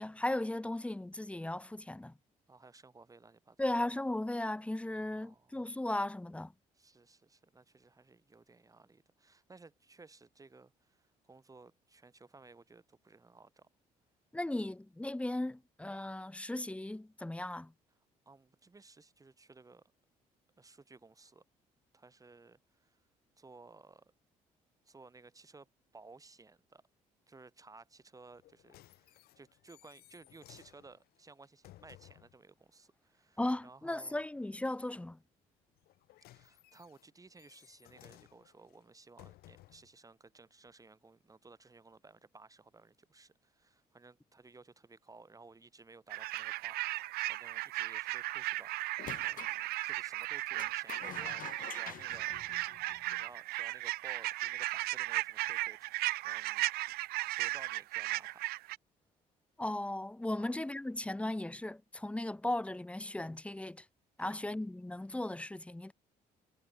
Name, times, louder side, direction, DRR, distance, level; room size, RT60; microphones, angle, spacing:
voice 1, 0.0-2.1 3.6-6.5 14.3-17.7 33.4-35.2 59.6-63.8 64.2-65.9, left 1 dB, 10° left, 0.8 m, -36 dB
voice 2, 2.5-3.7 4.9-5.7 6.7-13.7 18.3-19.8 20.6-21.4 21.9-23.0 23.4-24.0 24.9-25.7 25.9-26.8 27.3-34.2 36.3-48.7 49.2-52.3 53.0-56.6 57.3-58.4 60.4-60.6 64.2-64.4, right 3 dB, 20° right, 3.7 m, -57 dB
sound 1, 28.3-32.4 35.8-39.9 40.7-40.8, left 16 dB, 80° left, 4.5 m, -60 dB
sound 2, 46.1-58.8, right 18 dB, 80° right, 0.8 m, -36 dB
sound 3, 49.0-49.6 50.6-53.3, left 11 dB, 60° left, 2.0 m, -47 dB
cardioid pair, 85°, 16 cm